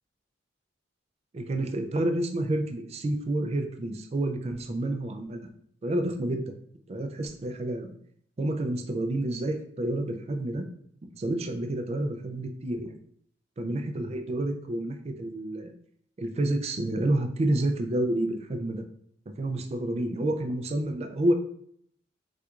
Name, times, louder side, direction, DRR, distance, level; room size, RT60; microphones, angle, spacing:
voice 1, 1.3-5.4 5.8-6.5 6.9-7.9 8.4-10.6 11.2-13.0 13.6-15.7 16.2-18.8 19.4-21.3, right 1 dB, 35° right, 6 dB, 0.4 m, -29 dB
4.4 x 2.4 x 2.3 m, 0.67 s
head